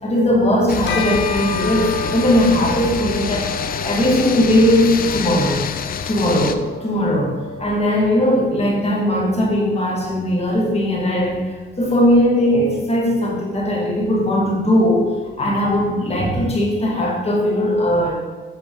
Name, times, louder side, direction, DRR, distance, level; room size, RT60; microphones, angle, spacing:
voice 1, 0.0-3.5 3.8-5.6 6.1-11.4 11.8-18.1, left 1 dB, 30° left, -3 dB, 1.8 m, -18 dB
sound 1, 0.7-6.5, left 7 dB, 45° left, 0.5 m, -27 dB
Bell, 0.9-10.5, left 2 dB, 65° left, 1.2 m, -32 dB
7.7 x 4.2 x 3.5 m, 1.3 s
cardioid pair, 90°, 20 cm